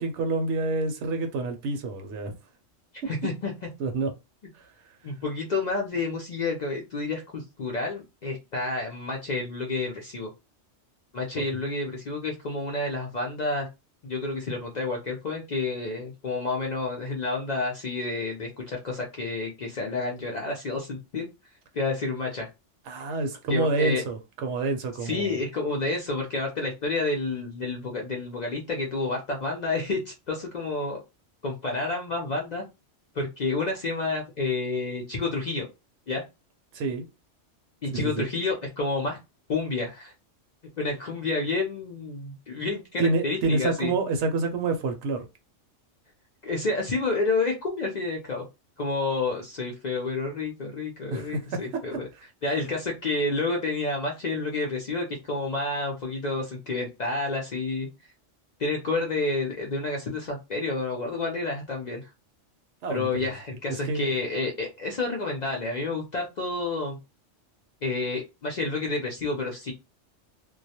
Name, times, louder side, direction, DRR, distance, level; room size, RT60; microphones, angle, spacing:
voice 1, 0.0-2.3 3.0-3.1 3.8-4.1 4.5-4.7 11.4-11.5 22.9-25.4 36.7-37.1 37.9-38.3 43.0-45.3 51.1-52.2 62.8-63.3 63.7-64.1, right 3 dB, 70° right, 0.8 m, -28 dB
voice 2, 3.1-3.7 5.0-10.3 11.1-13.7 14.0-21.3 21.7-22.5 23.5-24.0 25.0-31.0 31.4-32.6 33.1-35.7 36.1-36.2 37.8-39.2 39.5-40.1 40.8-43.9 46.4-48.4 48.8-52.1 52.4-57.9 58.6-62.1 62.9-67.0 67.8-69.7, left 3 dB, 55° left, 0.5 m, -29 dB
2.2 x 2.1 x 2.7 m
omnidirectional pair, 1.2 m